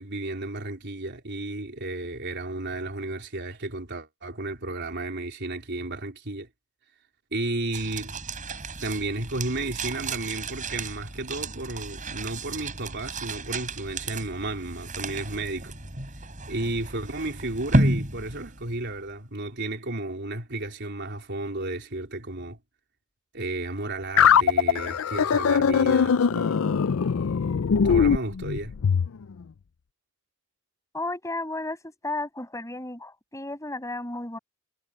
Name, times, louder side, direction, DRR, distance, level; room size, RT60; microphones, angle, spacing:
voice 1, 0.0-6.5 7.3-8.1 8.8-15.7 16.5-22.6 23.3-26.7 27.8-28.7, right 2 dB, 55° right, 4.0 m, -33 dB
sound 1, 7.7-19.1, right 1 dB, 40° right, 6.8 m, -32 dB
sound 2, 24.2-29.1, left 7 dB, 75° left, 0.5 m, -21 dB
voice 2, 30.9-34.4, left 2 dB, 15° left, 7.7 m, -33 dB
head